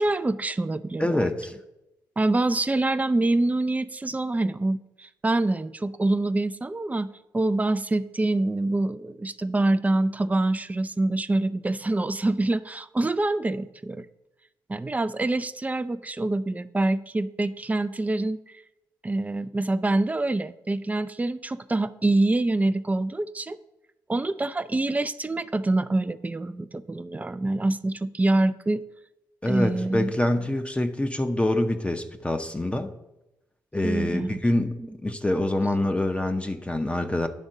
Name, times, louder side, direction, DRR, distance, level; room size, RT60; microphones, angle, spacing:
voice 1, 0.0-1.3 2.2-7.1 7.3-14.1 14.7-18.6 19.0-23.6 24.1-28.8 29.5-30.1 33.8-34.4 34.8-34.9, right 2 dB, 20° right, 12 dB, 0.4 m, -25 dB
voice 2, 1.0-1.6 29.4-32.9 33.7-37.3, left 1 dB, 15° left, 6 dB, 0.7 m, -26 dB
10.0 x 3.5 x 6.5 m, 0.93 s
supercardioid pair, 55°, 8 cm